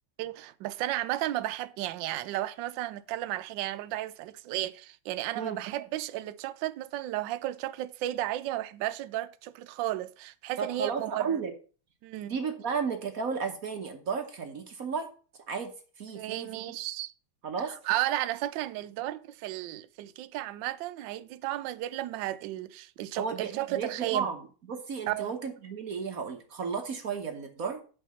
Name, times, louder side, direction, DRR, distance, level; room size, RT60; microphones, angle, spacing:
voice 1, 0.2-11.4 12.0-12.4 16.1-17.1 17.9-24.3 25.1-25.3, right 15 dB, 75° right, 1.1 m, -33 dB
voice 2, 10.6-11.5 12.3-15.1 15.5-16.7 17.4-17.7 23.1-24.4 24.7-27.8, right 6 dB, 50° right, 1.2 m, -33 dB
6.1 x 5.6 x 6.9 m
omnidirectional pair, 2.4 m